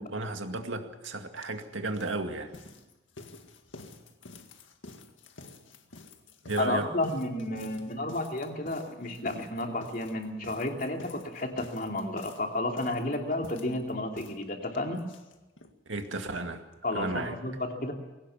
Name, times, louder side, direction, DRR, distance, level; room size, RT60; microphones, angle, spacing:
voice 1, 0.1-2.5 6.5-6.9 15.9-16.6 16.9-17.3, right 2 dB, 90° right, 6 dB, 2.1 m, -33 dB
sound 1, 1.0-1.1 1.4-15.8 16.0-16.1 16.3-16.4 16.7-16.8, left 2 dB, 90° left, 2.0 m, -49 dB
voice 2, 6.6-15.0 16.8-17.9, left 1 dB, 45° left, 2 dB, 3.0 m, -32 dB
21.5 x 18.0 x 7.2 m, 1.1 s
head